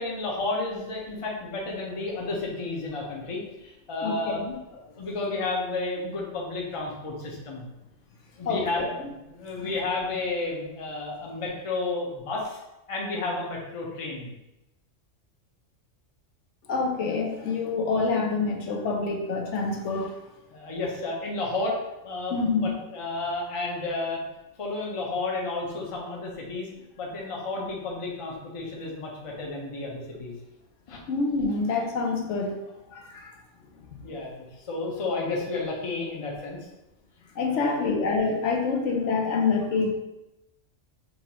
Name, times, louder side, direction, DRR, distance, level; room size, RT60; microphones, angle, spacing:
voice 1, 0.0-4.4 4.7-7.7 8.4-12.6 12.9-14.3 20.5-24.2 24.6-26.7 27.0-30.3 30.9-31.0 34.0-36.6 37.4-37.8, left 3 dB, 35° left, -2 dB, 0.7 m, -32 dB
voice 2, 4.0-4.6 8.5-8.9 9.6-9.8 16.7-20.1 22.3-22.7 31.1-32.6 32.9-33.3 37.4-39.9, left 4 dB, 75° left, 1 dB, 0.9 m, -27 dB
5.3 x 2.5 x 2.9 m, 0.94 s
omnidirectional pair, 1.3 m